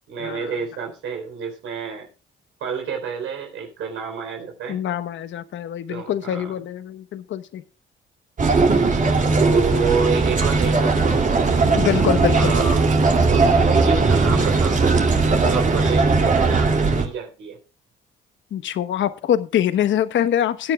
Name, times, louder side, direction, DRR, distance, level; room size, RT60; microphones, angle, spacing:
voice 1, 0.1-2.1 2.6-4.8 5.9-6.5 9.4-11.5 12.3-12.8 13.3-15.0 15.3-17.6, right 5 dB, 85° right, 1 dB, 3.9 m, -29 dB
voice 2, 4.7-7.6 11.7-12.5 18.5-20.7, left 10 dB, 70° left, 12 dB, 1.1 m, -24 dB
sound 1, 8.4-17.0, right 3 dB, 40° right, 2.8 m, -18 dB
20.5 x 9.7 x 2.3 m, 0.32 s
cardioid pair, 90°, 20 cm